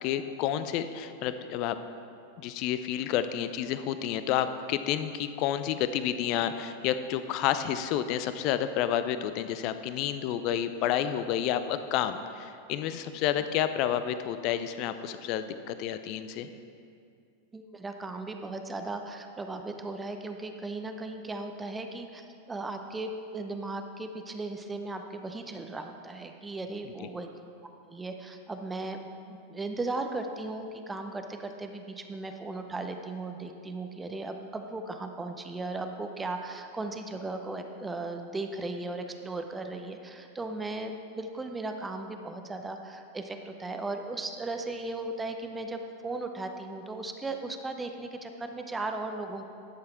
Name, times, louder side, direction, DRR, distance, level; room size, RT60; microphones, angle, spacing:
voice 1, 0.0-1.8 2.4-16.5 27.0-27.1, left 10 dB, 40° left, 11 dB, 0.5 m, -30 dB
voice 2, 17.5-27.3 27.9-49.5, right 2 dB, 10° right, 5 dB, 0.7 m, -37 dB
11.5 x 7.6 x 4.4 m, 2.4 s
figure-of-eight pair, 90°, 0 cm